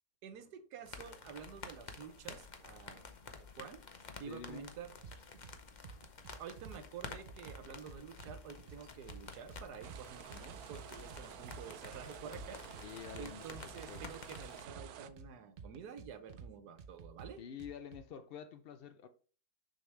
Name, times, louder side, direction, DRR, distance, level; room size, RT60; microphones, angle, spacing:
voice 1, 0.2-3.1 3.4-3.8 4.2-4.9 6.4-12.6 13.2-17.4, right 7 dB, 90° right, 1.4 m, -49 dB
sound 1, 0.9-14.7, left 4 dB, 40° left, 0.7 m, -51 dB
voice 2, 4.3-4.7 12.8-14.1 17.4-19.1, left 8 dB, 85° left, 0.5 m, -48 dB
sound 2, 5.0-5.5 5.8-6.8 7.1-8.8 9.1-10.0 10.3-12.0 12.3-13.3 13.5-15.3 15.6-16.5 16.8-18.0, right 6 dB, 50° right, 0.7 m, -51 dB
sound 3, 9.8-15.1, right 10 dB, 75° right, 1.1 m, -51 dB
6.6 x 6.4 x 3.2 m
omnidirectional pair, 1.6 m